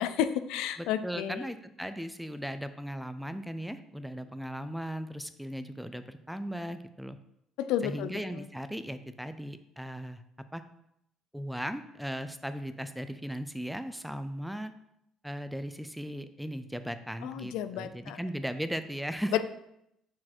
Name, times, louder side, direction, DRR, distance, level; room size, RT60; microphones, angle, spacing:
voice 1, 0.0-1.5 7.6-8.4 17.2-18.2 19.3-19.4, left 10 dB, 85° left, 11 dB, 0.4 m, -31 dB
voice 2, 0.8-7.2 7.8-10.2 10.5-10.6 11.3-14.7 15.2-19.3, equal, ahead, 11 dB, 0.3 m, -37 dB
6.2 x 4.4 x 4.3 m, 0.79 s
cardioid pair, 140°, 0 cm